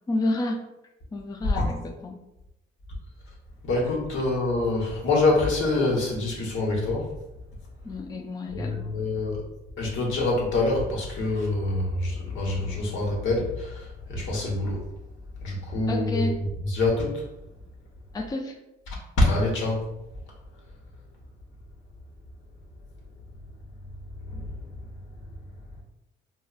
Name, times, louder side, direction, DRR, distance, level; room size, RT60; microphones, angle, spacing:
voice 1, 0.1-0.6 1.1-2.2 7.8-9.0 15.9-16.5 18.1-18.6, left 2 dB, 20° left, 2 dB, 0.4 m, -30 dB
voice 2, 3.6-7.1 8.5-9.4 9.8-14.8 15.4-17.2 19.2-19.8 24.2-24.6, left 2 dB, 80° left, -2 dB, 1.1 m, -25 dB
4.7 x 2.1 x 2.4 m, 0.91 s
cardioid pair, 90°, 20 cm